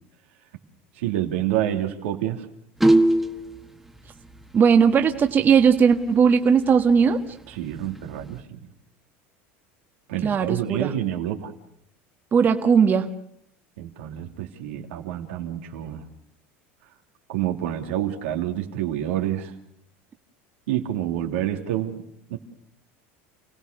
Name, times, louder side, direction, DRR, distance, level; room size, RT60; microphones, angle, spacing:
voice 1, 1.0-2.5 7.5-8.6 10.1-11.5 13.8-16.0 17.3-19.5 20.7-22.0 22.3-22.4, right 12 dB, 85° right, 3 dB, 2.9 m, -28 dB
sound 1, 2.8-3.6 5.3-5.4 5.6-5.7 6.2-6.3 6.7-6.8 7.6-8.4, right 1 dB, 5° right, 1.8 m, -19 dB
voice 2, 4.5-7.2 10.2-10.9 12.3-13.1, right 6 dB, 30° right, 5 dB, 1.6 m, -18 dB
29.0 x 17.0 x 6.7 m, 0.69 s
supercardioid pair, 110°, 6 cm